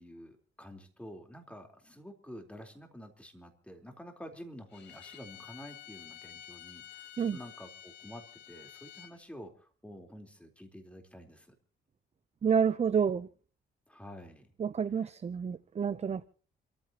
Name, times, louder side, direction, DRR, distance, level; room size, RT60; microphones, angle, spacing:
voice 1, 0.0-11.5 13.9-14.5 15.0-15.1, equal, 5° left, 4.0 m, -49 dB
Bowed string instrument, 4.7-9.2, left 11 dB, 65° left, 3.1 m, -50 dB
voice 2, 12.4-13.3 14.6-16.3, right 7 dB, 35° right, 0.6 m, -29 dB
28.0 x 14.5 x 3.0 m
cardioid pair, 90°, 20 cm